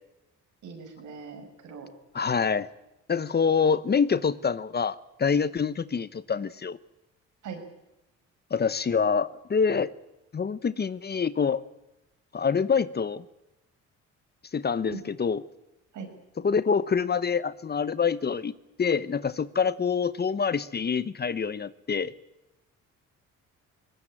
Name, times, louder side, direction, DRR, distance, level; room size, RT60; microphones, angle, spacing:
voice 1, 0.6-1.9 7.4-7.6 14.9-15.0 15.9-16.1, right 5 dB, 75° right, 5 dB, 6.3 m, -40 dB
voice 2, 2.1-2.7 3.1-6.8 8.5-9.9 10.3-11.6 12.3-13.2 14.5-15.4 16.4-18.5 18.8-22.1, left 6 dB, 35° left, 16 dB, 0.9 m, -26 dB
20.5 x 19.0 x 9.0 m, 0.95 s
cardioid pair, 90°, 30 cm